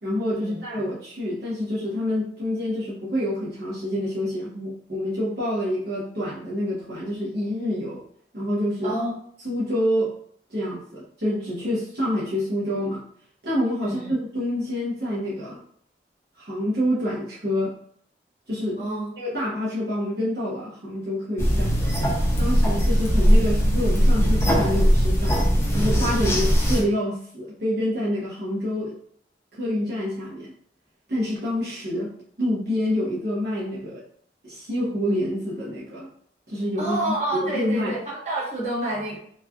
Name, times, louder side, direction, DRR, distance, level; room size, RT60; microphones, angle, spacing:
voice 1, 0.0-8.0 8.3-9.0 9.4-10.1 10.5-13.0 13.4-15.6 16.4-17.7 18.5-18.8 19.2-21.8 22.4-25.4 25.7-28.9 29.5-30.5 31.1-32.1 32.4-34.0 34.4-36.1 36.5-37.9, equal, 65° right, -8 dB, 0.9 m, -27 dB
voice 2, 13.8-14.1 18.8-19.1 26.2-26.4 36.8-39.2, right 1 dB, 40° right, -7 dB, 1.1 m, -28 dB
sound 1, 21.4-26.8, equal, 15° left, 0.5 m, -20 dB
3.1 x 2.4 x 2.3 m, 0.65 s
head